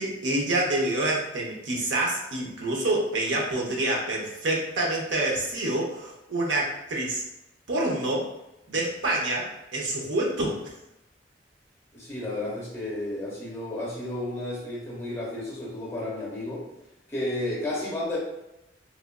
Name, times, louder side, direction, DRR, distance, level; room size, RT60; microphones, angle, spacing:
voice 1, 0.0-7.2 7.7-8.3 8.7-10.6, right 2 dB, 85° right, -2 dB, 0.7 m, -27 dB
voice 2, 11.9-16.6 17.1-18.2, left 1 dB, 15° left, -6 dB, 0.7 m, -32 dB
3.1 x 2.4 x 2.2 m, 0.90 s
head